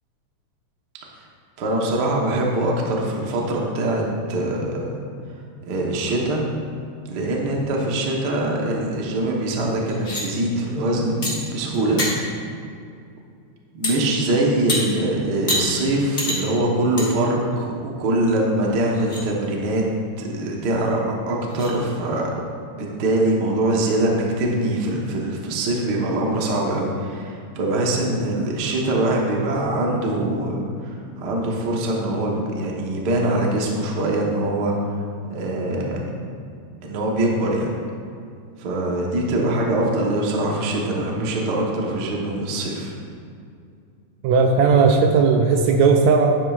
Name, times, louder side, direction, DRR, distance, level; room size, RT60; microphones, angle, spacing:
voice 1, 1.6-4.0 4.3-5.0 5.7-6.4 7.1-12.0 13.7-19.8 20.2-22.3 22.7-30.7 31.2-34.7 35.3-36.1 36.8-37.7 38.6-42.9, right 1 dB, 65° right, -1 dB, 1.0 m, -23 dB
sound 1, 9.9-10.2 11.2-11.3 11.7-12.1 13.8-14.0 14.7-14.8 15.5-15.6 16.2-16.4 17.0-17.1 17.5-17.6 18.3-18.4 18.9-19.2 20.9-21.0 21.5-21.7, left 1 dB, 30° left, 1.1 m, -25 dB
voice 2, 44.2-46.4, right 5 dB, 80° right, 3 dB, 1.8 m, -16 dB
11.5 x 8.9 x 2.4 m, 2.4 s
omnidirectional pair, 3.5 m